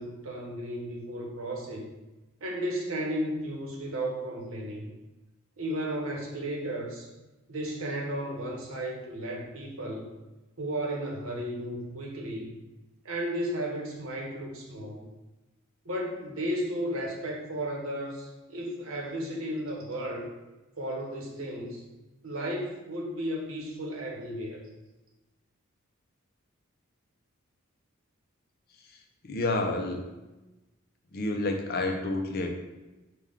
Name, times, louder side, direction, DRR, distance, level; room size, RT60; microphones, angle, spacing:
voice 1, 0.0-1.9 2.4-4.9 5.6-7.1 7.5-10.1 10.6-12.6 13.0-15.0 15.8-20.3 20.8-21.8 22.2-24.6, right 1 dB, 85° right, 0 dB, 1.0 m, -34 dB
voice 2, 29.2-30.0 31.1-32.5, left 2 dB, 50° left, 3 dB, 0.6 m, -29 dB
5.8 x 2.3 x 3.6 m, 1.1 s
head